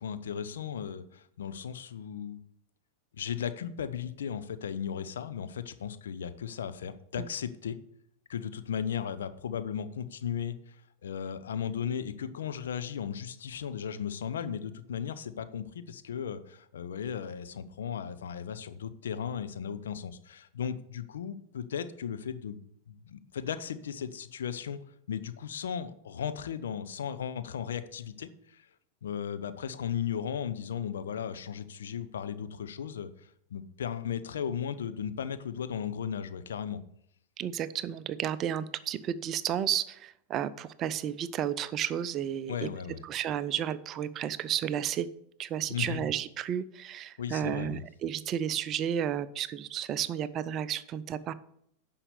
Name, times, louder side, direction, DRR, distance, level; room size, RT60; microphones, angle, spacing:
voice 1, 0.0-2.4 3.2-7.8 8.3-10.8 11.0-24.8 25.1-28.7 29.0-36.8 42.5-43.0 45.7-46.0 47.2-47.8, left 8 dB, 65° left, 11 dB, 0.7 m, -36 dB
voice 2, 37.4-42.7 43.0-45.1 45.4-51.3, right 9 dB, 30° right, 15 dB, 0.5 m, -32 dB
9.9 x 5.9 x 6.9 m, 0.71 s
figure-of-eight pair, 90°, 0 cm